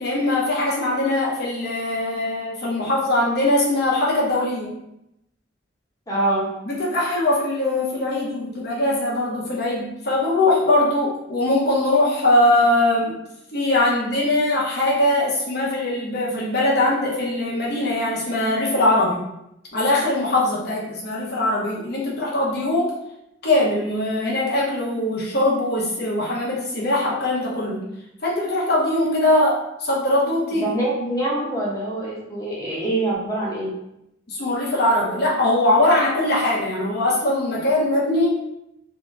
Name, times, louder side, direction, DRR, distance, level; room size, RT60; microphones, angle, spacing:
voice 1, 0.0-4.7 6.7-13.1 13.5-19.2 19.7-22.9 23.4-27.8 28.2-30.7 34.3-38.3, left 1 dB, 60° left, -5 dB, 0.9 m, -21 dB
voice 2, 6.1-6.5 30.6-33.7, right 2 dB, 20° left, -6 dB, 0.8 m, -24 dB
2.8 x 2.3 x 3.6 m, 0.83 s
head